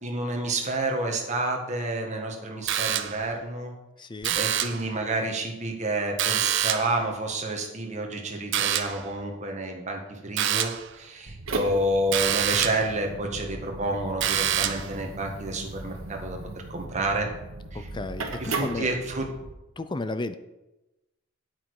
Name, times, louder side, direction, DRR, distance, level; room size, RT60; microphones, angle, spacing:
voice 1, 0.0-3.7 4.3-17.3 17.7-17.9 18.4-19.3, right 2 dB, 35° right, 2 dB, 1.6 m, -29 dB
sound 1, 2.7-3.3 4.2-4.9 6.2-7.0 8.5-9.1 10.4-10.9 12.1-12.9 14.2-14.9, right 10 dB, 60° right, 0.7 m, -26 dB
voice 2, 4.0-4.4 17.7-18.9 19.8-20.4, left 2 dB, 20° left, 11 dB, 0.5 m, -33 dB
sound 2, 11.3-19.5, right 3 dB, 80° right, 1.4 m, -37 dB
9.0 x 8.4 x 4.8 m, 0.99 s
head